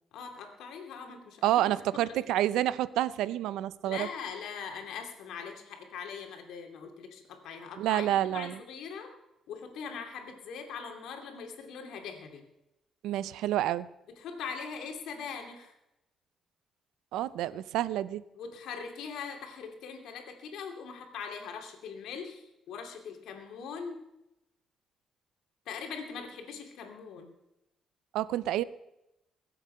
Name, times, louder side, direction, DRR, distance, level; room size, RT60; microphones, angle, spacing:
voice 1, 0.1-2.1 3.8-9.1 9.5-12.4 14.1-15.7 18.3-24.0 25.7-27.3, left 6 dB, 80° left, 4 dB, 2.6 m, -41 dB
voice 2, 1.4-4.1 7.8-8.6 13.0-13.9 17.1-18.2 28.1-28.6, right 13 dB, 90° right, 17 dB, 0.5 m, -28 dB
22.0 x 7.9 x 5.6 m, 0.88 s
cardioid pair, 90°, 0 cm